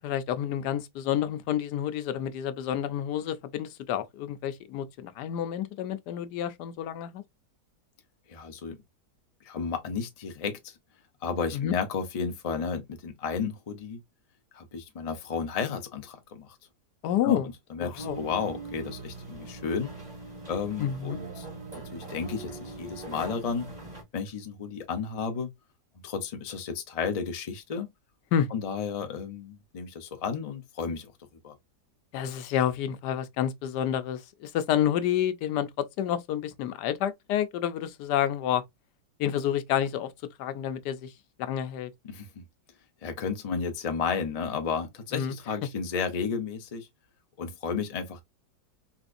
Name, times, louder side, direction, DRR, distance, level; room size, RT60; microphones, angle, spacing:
voice 1, 0.0-7.2 11.5-11.7 17.0-17.5 17.8-18.2 20.8-21.2 28.3-28.5 32.1-38.6 39.2-40.1 40.4-41.1 41.4-41.9 45.1-45.3, left 10 dB, 85° left, 1.2 m, -29 dB
voice 2, 8.3-8.8 9.4-10.7 11.2-14.0 14.5-16.6 17.2-17.4 17.7-19.9 20.5-21.4 21.7-23.7 24.1-25.5 26.0-27.9 28.5-31.1 31.4-31.6 42.1-42.4 43.0-46.9 47.4-48.2, left 5 dB, 65° left, 0.3 m, -32 dB
sound 1, 18.0-24.0, right 3 dB, 25° right, 1.4 m, -41 dB
4.1 x 2.6 x 2.4 m
omnidirectional pair, 1.7 m